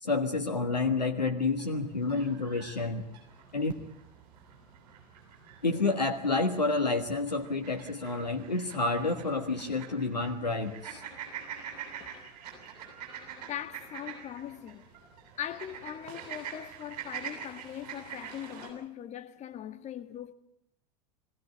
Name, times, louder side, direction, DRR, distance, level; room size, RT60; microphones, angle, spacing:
voice 1, 0.0-3.0 3.5-3.7 5.6-11.0, left 3 dB, 85° left, 1.5 m, -29 dB
sound 1, 1.4-18.7, right 8 dB, 60° right, 7.9 m, -46 dB
voice 2, 13.4-14.9 15.4-20.3, left 11 dB, 35° left, 1.7 m, -40 dB
22.5 x 16.5 x 10.0 m
figure-of-eight pair, 80°, 21 cm